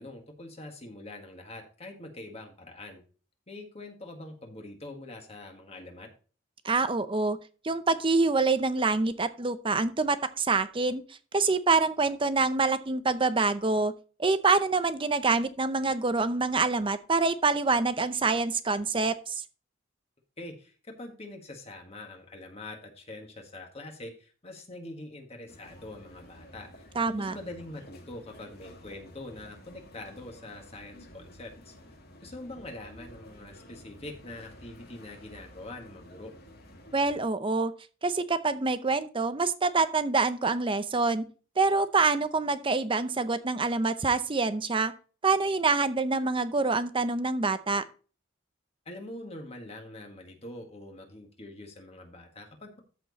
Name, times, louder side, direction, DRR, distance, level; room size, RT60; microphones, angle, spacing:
voice 1, 0.0-3.0 3.5-6.1 20.4-31.7 32.2-36.3 48.8-52.8, left 2 dB, 30° left, 3 dB, 1.7 m, -44 dB
voice 2, 6.6-7.4 7.6-11.0 11.3-13.9 14.2-19.4 27.0-27.4 36.9-37.7 38.0-41.2 41.6-44.9 45.2-47.8, right 3 dB, 25° right, 12 dB, 0.7 m, -26 dB
sound 1, 25.5-37.3, equal, 50° left, 2.1 m, -51 dB
13.5 x 4.5 x 4.0 m, 0.37 s
head